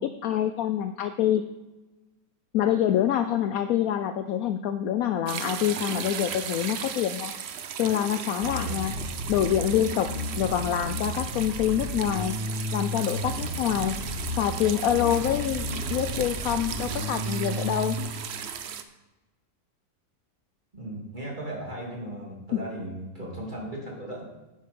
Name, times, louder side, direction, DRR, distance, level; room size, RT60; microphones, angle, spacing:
voice 1, 0.0-1.4 2.5-7.3 7.8-8.9 9.3-10.1 10.4-12.3 12.7-14.0 14.3-18.0, left 10 dB, 80° left, 9 dB, 0.8 m, -26 dB
sound 1, 5.3-18.8, right 7 dB, 70° right, 0.6 m, -36 dB
Bass guitar, 8.4-18.0, equal, 45° right, 2.6 m, -33 dB
voice 2, 20.7-24.2, right 1 dB, 25° right, -2 dB, 2.8 m, -36 dB
9.5 x 8.2 x 5.2 m, 1.1 s
omnidirectional pair, 2.0 m